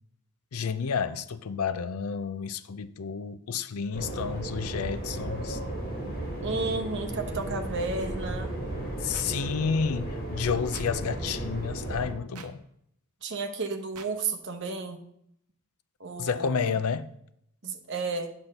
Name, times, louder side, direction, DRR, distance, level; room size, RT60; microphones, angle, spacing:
voice 1, 0.5-5.6 9.0-12.6 16.2-17.1, left 6 dB, 80° left, 0.5 m, -30 dB
sound 1, 3.9-12.1, right 1 dB, 45° left, 2.1 m, -34 dB
voice 2, 6.4-8.5 13.2-15.1 16.0-16.7 17.6-18.3, right 3 dB, 55° right, 0.9 m, -32 dB
sound 2, 9.1-9.3 10.7-10.9 12.3-12.5 13.9-14.1, right 6 dB, 85° right, 0.8 m, -44 dB
8.7 x 4.3 x 6.6 m
head